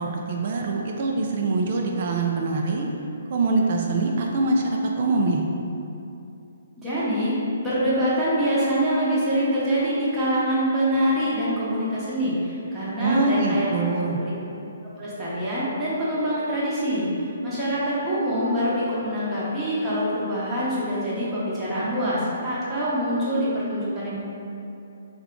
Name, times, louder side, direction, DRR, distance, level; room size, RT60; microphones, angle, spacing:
voice 1, 0.0-2.9 3.3-5.5 13.0-14.2, right 3 dB, 45° right, 0 dB, 0.3 m, -24 dB
voice 2, 6.8-7.4 7.6-13.7 14.0-14.3 15.0-24.2, equal, 10° right, -11 dB, 0.9 m, -25 dB
3.5 x 2.3 x 3.7 m, 2.7 s
hypercardioid pair, 155°, 0 cm